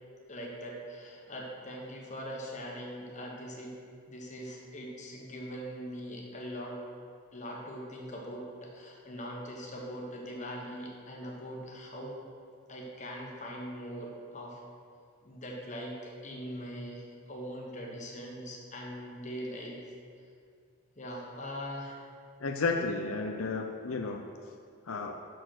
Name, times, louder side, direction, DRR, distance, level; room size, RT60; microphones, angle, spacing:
voice 1, 0.3-3.8 4.1-6.8 7.3-12.2 12.7-14.6 15.2-19.9 21.0-22.0, equal, 35° left, -2 dB, 1.3 m, -41 dB
voice 2, 22.4-24.2 24.9-25.2, left 3 dB, 80° left, 3 dB, 0.6 m, -32 dB
6.4 x 6.4 x 6.4 m, 2.3 s
head